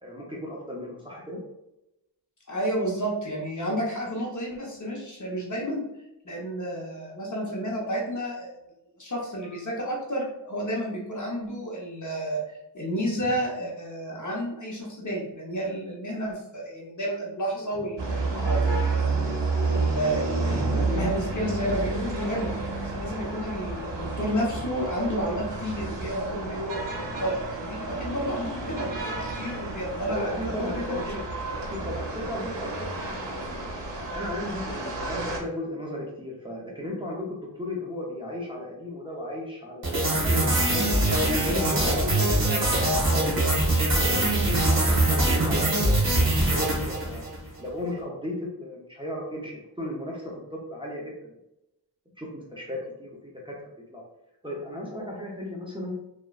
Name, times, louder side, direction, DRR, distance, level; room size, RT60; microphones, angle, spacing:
voice 1, 0.0-1.4 23.2-23.4 30.1-31.2 31.6-32.9 33.4-40.9 41.4-46.0 46.5-47.2 47.6-51.3 52.2-53.6 53.9-54.0 54.4-55.9, left 1 dB, 10° right, -3 dB, 0.5 m, -35 dB
voice 2, 2.5-5.8 6.2-8.6 9.0-19.2 19.7-22.5 22.8-31.0, equal, 45° left, -2 dB, 0.9 m, -31 dB
sound 1, 18.0-35.4, right 3 dB, 80° right, 0.6 m, -30 dB
sound 2, 39.8-47.4, right 1 dB, 50° right, 1.2 m, -23 dB
3.0 x 2.3 x 2.3 m, 0.87 s
wide cardioid pair, 65°, 42 cm